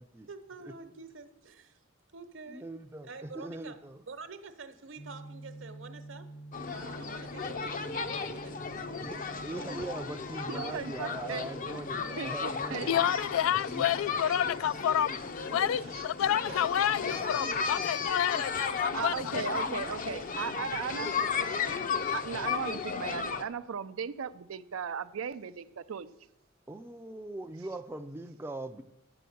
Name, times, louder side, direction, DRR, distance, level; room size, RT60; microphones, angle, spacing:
voice 1, 0.3-1.8 2.1-2.6 3.0-3.8 4.0-6.3 6.7-9.0 9.2-9.9 17.7-17.9, right 4 dB, 65° right, 1.0 m, -48 dB
voice 2, 2.5-4.0 9.0-13.2 13.7-13.9 16.5-16.6 19.6-19.9 26.7-28.8, right 1 dB, 10° right, 0.4 m, -41 dB
sound 1, 5.0-22.5, right 2 dB, 60° left, 1.0 m, -51 dB
sound 2, 6.5-23.4, left 5 dB, 40° left, 0.6 m, -35 dB
voice 3, 10.5-11.5 12.2-13.0 14.2-14.6 15.8-16.0 16.5-16.6 18.9-21.2 22.1-26.1, right 6 dB, 85° right, 0.5 m, -37 dB
voice 4, 12.9-19.4, left 10 dB, 80° left, 0.3 m, -29 dB
10.0 x 6.9 x 7.7 m
head